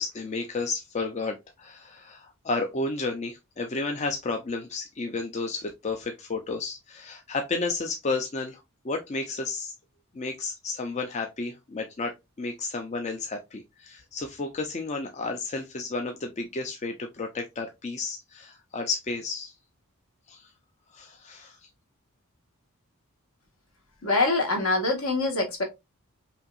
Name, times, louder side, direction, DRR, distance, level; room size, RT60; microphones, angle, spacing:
voice 1, 0.0-9.7 10.1-19.5 20.3-20.5 20.9-21.7, left 3 dB, 30° left, 0.5 m, -32 dB
voice 2, 24.0-25.6, left 3 dB, 65° left, 1.5 m, -24 dB
5.5 x 2.7 x 2.4 m
head